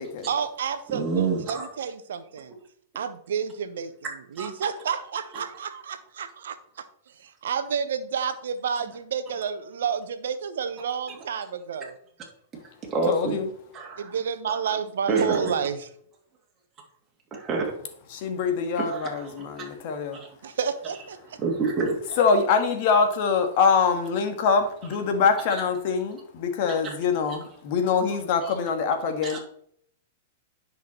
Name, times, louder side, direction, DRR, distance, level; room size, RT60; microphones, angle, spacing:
voice 1, 0.3-2.5 2.9-3.9 4.4-6.6 7.2-12.0 14.0-15.8 20.4-21.4, right 7 dB, 70° right, 11 dB, 1.1 m, -30 dB
voice 2, 0.9-1.7 4.3-4.5 5.3-5.5 11.1-11.2 12.8-13.4 13.7-14.2 14.5-14.7 15.1-15.6 17.3-17.7 18.8-19.3 19.6-19.7 20.1-20.5 21.4-22.2 25.5-25.6 28.5-28.6 29.2-29.4, right 4 dB, 25° right, -2 dB, 2.6 m, -28 dB
voice 3, 13.1-13.5 18.1-20.3 22.2-29.4, left 5 dB, 55° left, 6 dB, 2.0 m, -24 dB
10.0 x 5.9 x 4.5 m, 0.63 s
hypercardioid pair, 105°, 0 cm